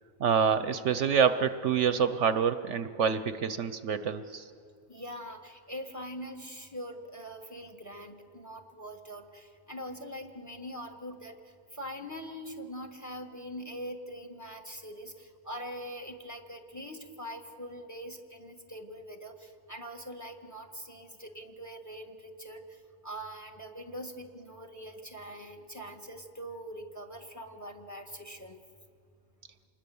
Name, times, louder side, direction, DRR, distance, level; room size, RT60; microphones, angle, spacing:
voice 1, 0.2-4.5, right 7 dB, 65° right, 11 dB, 1.0 m, -27 dB
voice 2, 4.9-28.6, equal, 15° left, 5 dB, 1.4 m, -43 dB
27.0 x 21.0 x 7.0 m, 2.3 s
omnidirectional pair, 1.4 m